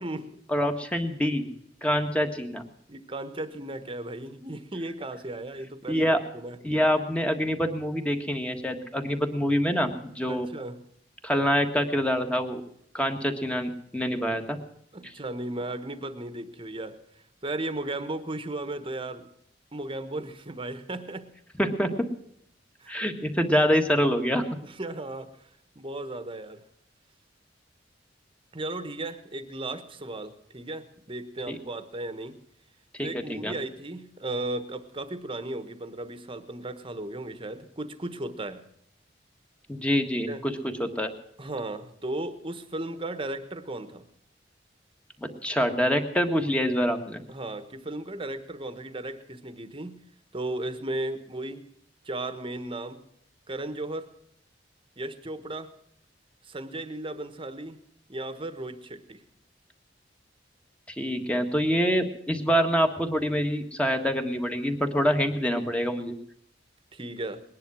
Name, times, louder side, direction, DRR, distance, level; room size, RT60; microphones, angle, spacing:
voice 1, 0.5-1.5 1.8-2.6 5.9-6.2 6.6-10.5 11.2-12.6 12.9-14.6 15.0-15.1 21.6-21.9 22.9-24.4 31.5-31.6 33.0-33.5 39.7-40.5 40.8-41.1 45.4-47.2 60.9-66.1, equal, 5° left, 5 dB, 1.6 m, -26 dB
voice 2, 2.9-6.6 10.3-10.8 14.9-17.0 17.4-19.3 19.7-21.3 22.8-22.9 24.6-25.3 25.7-26.6 28.5-32.4 33.0-38.6 40.3-40.4 41.4-44.0 47.3-50.0 50.3-51.6 52.0-53.0 53.5-54.1 55.0-55.7 56.4-57.8 58.1-59.2 66.9-67.4, right 2 dB, 30° right, 11 dB, 1.2 m, -35 dB
20.5 x 10.5 x 6.2 m, 0.70 s
head